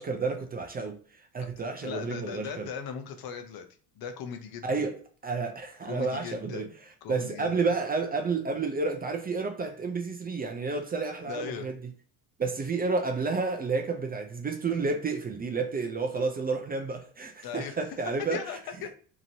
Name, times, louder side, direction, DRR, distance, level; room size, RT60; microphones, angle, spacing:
voice 1, 0.0-2.7 4.6-6.7 7.1-11.8 12.4-18.4, right 4 dB, 20° right, 0.4 m, -30 dB
voice 2, 1.8-3.7 3.9-4.9 5.8-6.7 7.0-7.7 11.3-11.7 17.4-17.8 18.3-18.9, left 7 dB, 55° left, 0.7 m, -38 dB
2.9 x 2.5 x 2.7 m
supercardioid pair, 85°, 43 cm